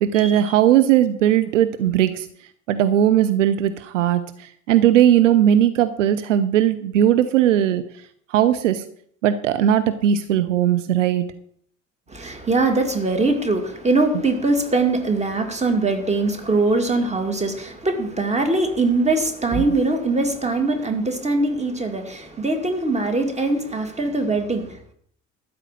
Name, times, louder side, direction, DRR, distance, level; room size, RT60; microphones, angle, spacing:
voice 1, 0.0-2.3 2.7-7.8 8.3-8.8 9.2-11.3 19.6-19.7, right 11 dB, 70° right, 11 dB, 0.7 m, -18 dB
voice 2, 12.1-24.9, right 2 dB, 15° right, 5 dB, 2.3 m, -22 dB
13.0 x 5.0 x 8.4 m, 0.64 s
figure-of-eight pair, 60°, 38 cm